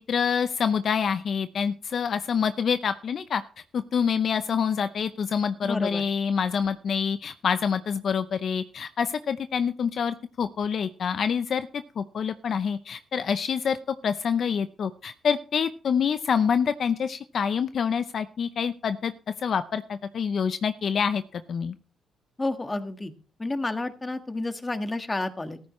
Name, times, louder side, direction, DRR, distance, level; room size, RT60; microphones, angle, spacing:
voice 1, 0.0-3.4 3.7-19.1 19.4-21.7, left 6 dB, 55° left, 11 dB, 0.7 m, -26 dB
voice 2, 5.6-6.0 22.4-23.1 23.4-25.6, left 2 dB, 20° left, 7 dB, 1.6 m, -30 dB
14.5 x 14.0 x 3.2 m, 0.39 s
cardioid pair, 90°, 0 cm